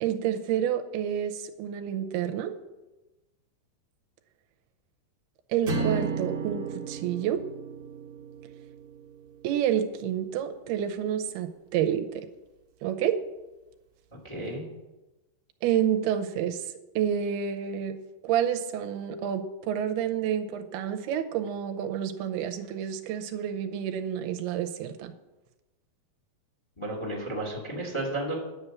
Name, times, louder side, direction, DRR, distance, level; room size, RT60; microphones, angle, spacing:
voice 1, 0.0-2.5 5.5-7.4 9.4-12.3 12.8-13.2 15.6-16.6 17.0-18.0 18.2-25.1, right 9 dB, 90° right, 6 dB, 2.7 m, -29 dB
sound 1, 5.7-10.0, right 4 dB, 45° right, 1.6 m, -34 dB
voice 2, 14.2-14.6 26.8-28.4, right 1 dB, 10° left, -1 dB, 1.5 m, -32 dB
10.5 x 6.9 x 7.2 m, 1.0 s
omnidirectional pair, 4.5 m